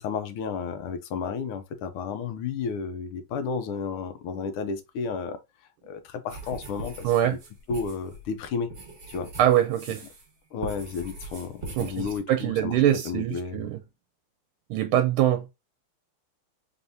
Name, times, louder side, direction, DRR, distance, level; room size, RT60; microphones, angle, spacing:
voice 1, 0.0-5.4 5.9-7.4 7.7-8.7 9.1-9.3 10.5-12.8 13.0-13.7, left 5 dB, 80° left, 1.6 m, -32 dB
sound 1, 6.3-10.3 10.6-12.2, right 2 dB, 35° right, 1.1 m, -41 dB
voice 2, 7.0-7.4 9.4-10.0 11.8-13.8 14.7-15.5, right 11 dB, 80° right, 1.4 m, -23 dB
3.9 x 3.5 x 2.6 m
omnidirectional pair, 2.4 m